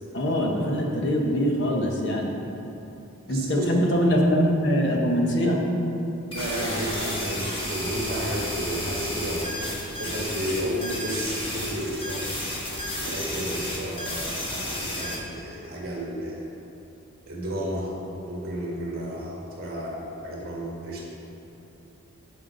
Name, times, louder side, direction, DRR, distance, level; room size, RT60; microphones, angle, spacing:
voice 1, 0.1-2.3 3.3-5.6, equal, 55° left, 0 dB, 1.1 m, -23 dB
voice 2, 3.3-3.7 6.3-9.7 10.0-12.3 13.0-16.4 17.3-17.9 18.2-21.0, equal, 45° right, -3 dB, 1.8 m, -32 dB
sound 1, 6.3-15.2, left 1 dB, 25° left, 1.5 m, -32 dB
7.7 x 7.7 x 5.3 m, 2.9 s
head